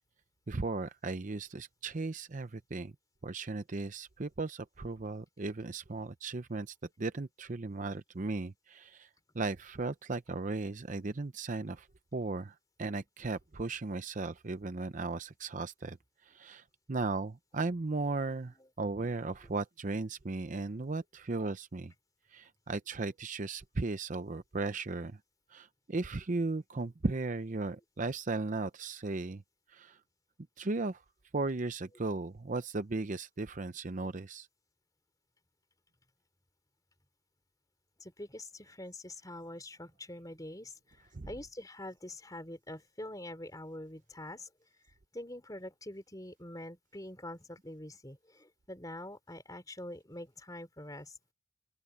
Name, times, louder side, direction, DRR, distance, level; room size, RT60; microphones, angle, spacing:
voice 1, 0.5-2.9 3.2-9.1 9.3-11.9 12.1-16.0 16.2-21.9 22.3-25.2 25.5-29.4 29.7-30.0 30.6-31.0 31.3-34.5 41.1-41.3, right 3 dB, 40° right, 0.6 m, -36 dB
voice 2, 38.0-44.5 45.1-51.2, left 1 dB, 20° left, 3.8 m, -45 dB
open air
head